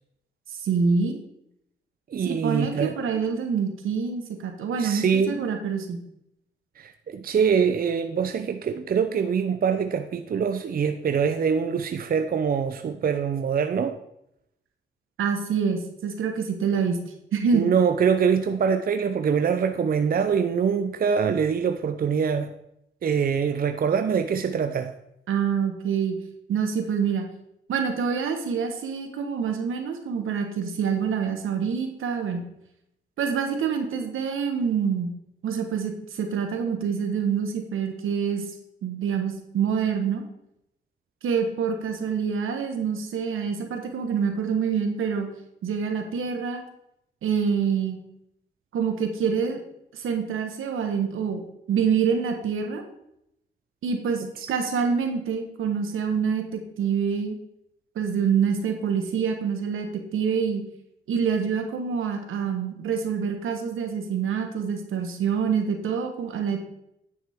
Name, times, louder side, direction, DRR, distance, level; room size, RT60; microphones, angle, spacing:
voice 1, 0.6-1.2 2.2-6.0 15.2-17.0 17.3-17.6 25.3-26.2 26.5-27.2 27.7-32.4 33.2-35.1 35.4-38.4 38.8-40.2 41.2-45.3 45.6-46.6 47.2-48.0 48.7-49.6 49.9-51.4 51.7-52.8 53.8-57.4 57.9-60.6 61.1-66.6, right 6 dB, 80° right, 4 dB, 1.4 m, -26 dB
voice 2, 2.1-2.9 4.8-5.5 6.8-14.0 17.5-22.5 23.0-24.9 54.4-54.5, right 6 dB, 45° right, 8 dB, 0.6 m, -24 dB
9.6 x 7.2 x 3.6 m, 0.81 s
cardioid pair, 80°, 21 cm